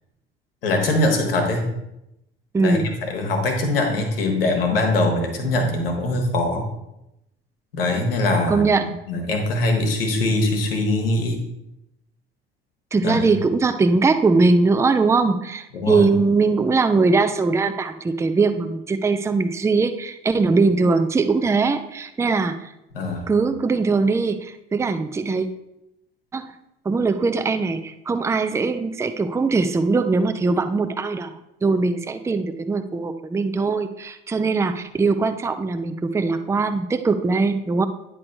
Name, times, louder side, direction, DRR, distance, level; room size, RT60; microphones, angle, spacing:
voice 1, 0.6-1.7 2.6-6.6 7.7-11.4 13.0-13.3 15.7-16.1 22.9-23.3, left 2 dB, 70° left, 3 dB, 1.3 m, -22 dB
voice 2, 2.5-2.9 8.5-8.9 12.9-22.7 23.3-25.5 26.3-26.5 26.8-37.8, right 4 dB, 10° right, 9 dB, 0.5 m, -21 dB
9.6 x 3.2 x 5.3 m, 0.86 s
figure-of-eight pair, 55°, 29 cm